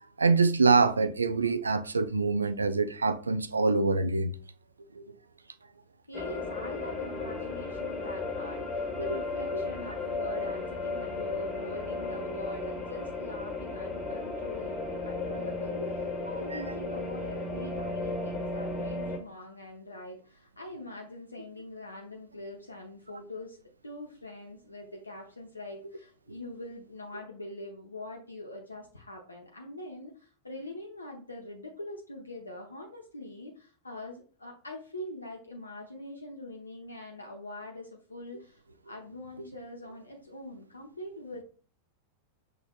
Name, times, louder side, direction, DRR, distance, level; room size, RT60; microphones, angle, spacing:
voice 1, 0.2-4.3 5.0-5.1 16.5-16.7, right 4 dB, 75° right, 0.3 m, -25 dB
voice 2, 6.1-41.4, left 1 dB, 80° left, 0.7 m, -43 dB
sound 1, 6.1-19.2, left 3 dB, 30° left, 1.3 m, -34 dB
6.1 x 3.2 x 2.2 m
figure-of-eight pair, 90°, 0 cm